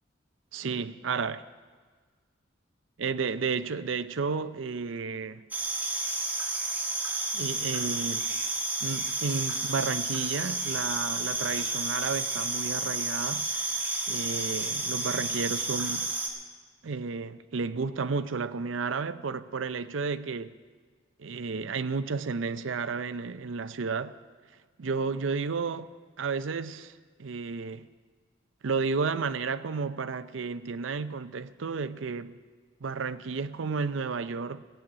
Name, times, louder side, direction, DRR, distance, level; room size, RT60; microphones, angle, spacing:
voice 1, 0.5-1.4 3.0-5.4 7.3-8.3 8.8-16.1 16.8-20.5 21.2-24.1 24.8-25.9 26.2-27.9 28.6-32.4 32.8-34.6, right 4 dB, 80° right, 0.6 m, -32 dB
sound 1, 5.5-16.3, right 2 dB, 10° right, 1.9 m, -31 dB
15.5 x 7.7 x 8.7 m
head